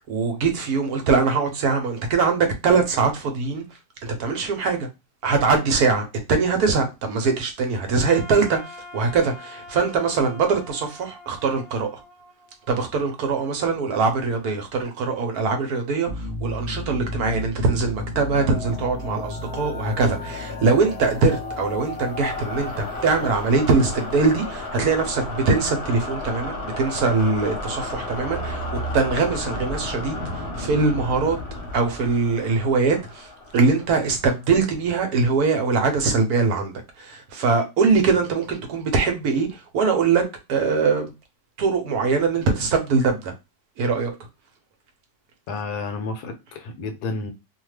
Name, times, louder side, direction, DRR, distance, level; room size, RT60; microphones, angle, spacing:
voice 1, 0.1-3.6 4.0-4.9 5.2-12.0 12.7-31.4 31.7-40.2 40.5-41.1 41.6-43.3 43.8-44.1, right 4 dB, 70° right, 1.1 m, -22 dB
Wind instrument woodwind instrument, 8.0-13.1, left 2 dB, 55° right, 0.7 m, -44 dB
sound 1, 16.1-34.5, left 2 dB, 50° left, 0.9 m, -32 dB
voice 2, 45.5-47.3, left 3 dB, 70° left, 1.1 m, -31 dB
2.7 x 2.2 x 3.1 m
omnidirectional pair, 1.8 m